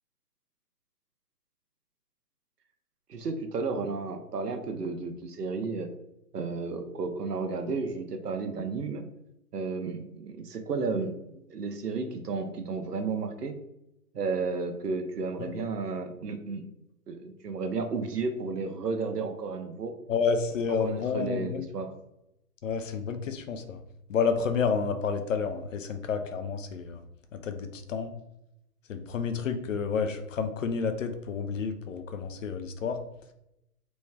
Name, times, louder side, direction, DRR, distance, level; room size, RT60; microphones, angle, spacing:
voice 1, 3.1-5.9 6.3-9.0 9.5-13.5 14.1-16.6 17.1-19.9 20.7-21.9, right 4 dB, 85° right, 6 dB, 0.8 m, -33 dB
voice 2, 20.1-21.7 22.6-23.8 24.1-27.0 27.3-28.1 28.9-33.0, left 5 dB, 55° left, 8 dB, 0.6 m, -30 dB
3.1 x 3.1 x 3.5 m, 0.86 s
hypercardioid pair, 145°, 46 cm